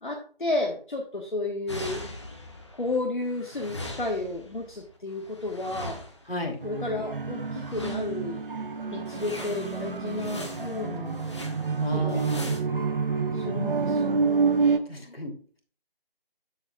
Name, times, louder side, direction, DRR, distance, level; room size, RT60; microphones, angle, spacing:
voice 1, 0.0-2.0 2.8-6.0 6.6-8.4 8.9-11.2 11.9-12.3 13.3-14.3, left 2 dB, 55° left, 1 dB, 1.4 m, -32 dB
sound 1, 1.7-3.0 3.2-6.4 7.4-8.3 8.7-8.8 9.1-12.6, left 1 dB, 30° left, 1.0 m, -41 dB
voice 2, 6.3-6.6 11.8-12.6 14.9-15.4, equal, 70° left, 3 dB, 2.8 m, -33 dB
sound 2, 6.6-14.8, right 5 dB, 60° right, 0.9 m, -28 dB
13.5 x 4.7 x 2.3 m, 0.42 s
figure-of-eight pair, 160°, 31 cm